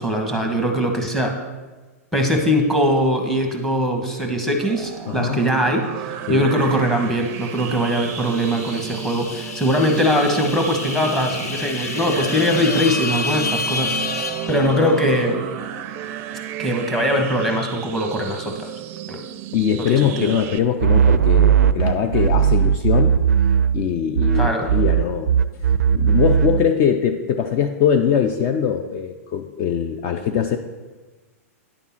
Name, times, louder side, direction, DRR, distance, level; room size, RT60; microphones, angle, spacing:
voice 1, 0.0-1.4 2.1-15.4 16.6-18.7 19.1-19.2 19.8-20.4 24.3-24.7, equal, 5° left, 2 dB, 1.1 m, -21 dB
sound 1, 4.6-20.6, right 11 dB, 30° right, 0.5 m, -33 dB
voice 2, 5.1-5.4 6.3-6.5 19.5-23.1 23.7-25.3 25.9-30.6, left 8 dB, 35° left, 6 dB, 0.5 m, -22 dB
Glitch Riser, 7.2-15.3, left 4 dB, 85° left, 0.7 m, -30 dB
sound 2, 20.8-23.9 24.1-26.7, right 8 dB, 85° right, 0.4 m, -17 dB
9.9 x 3.6 x 7.2 m, 1.3 s
hypercardioid pair, 140°, 8 cm